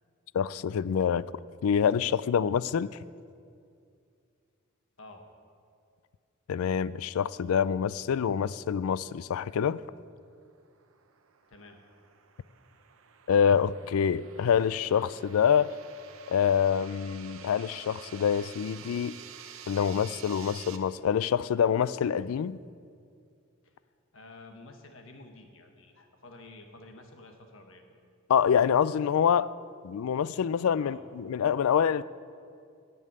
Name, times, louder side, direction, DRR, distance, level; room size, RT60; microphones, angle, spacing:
voice 1, 0.3-1.3 1.6-3.0 6.5-9.8 13.3-15.7 16.3-19.2 19.7-22.6 28.3-29.5 29.8-32.0, left 7 dB, 80° left, 18 dB, 0.3 m, -26 dB
sound 1, 10.3-20.8, right 8 dB, 75° right, 0.8 m, -50 dB
voice 2, 23.6-27.8 30.8-31.1, left 2 dB, 65° left, 4 dB, 1.4 m, -50 dB
14.0 x 5.5 x 9.6 m, 2.3 s
head